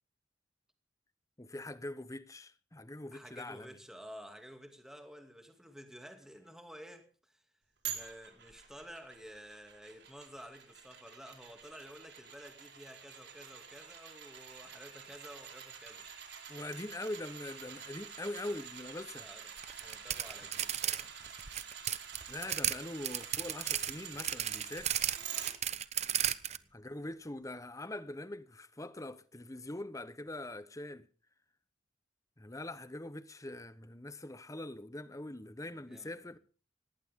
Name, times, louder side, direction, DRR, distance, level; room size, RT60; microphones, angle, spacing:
voice 1, 1.4-3.8 16.5-19.3 22.3-25.0 26.7-31.1 32.4-36.4, left 1 dB, 15° left, 0.9 m, -43 dB
voice 2, 3.1-7.4 7.9-16.1 19.1-21.1 26.4-26.7 35.6-36.3, equal, 5° right, 2.4 m, -52 dB
sound 1, 7.8-25.5 25.9-26.0, right 8 dB, 60° right, 4.7 m, -48 dB
sound 2, 19.6-21.0 21.3-22.8 23.0-26.6, right 10 dB, 35° right, 0.8 m, -34 dB
18.5 x 18.0 x 3.7 m
head